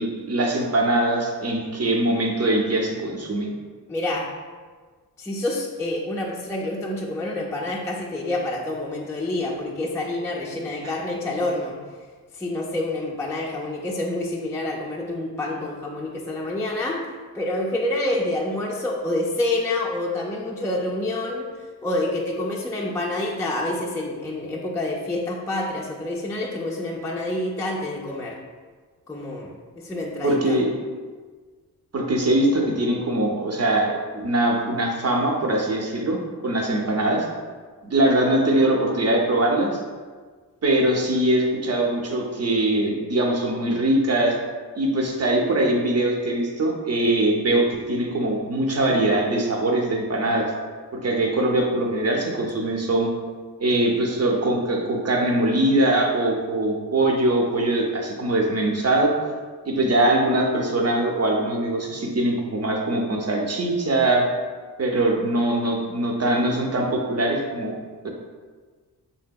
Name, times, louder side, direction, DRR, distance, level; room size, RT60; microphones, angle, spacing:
voice 1, 0.0-3.5 10.8-10.9 30.2-30.7 31.9-36.2 36.4-37.3 37.8-39.8 40.6-44.4 44.7-50.5 50.9-53.1 53.6-59.1 59.6-64.3 64.8-67.7 68.0-68.1, right 1 dB, 40° right, 1 dB, 0.6 m, -22 dB
voice 2, 3.9-4.3 5.2-11.8 12.3-17.0 17.3-28.4 29.1-30.6, left 1 dB, 10° left, -3 dB, 0.4 m, -27 dB
3.2 x 2.8 x 2.2 m, 1.5 s
cardioid pair, 50°, 39 cm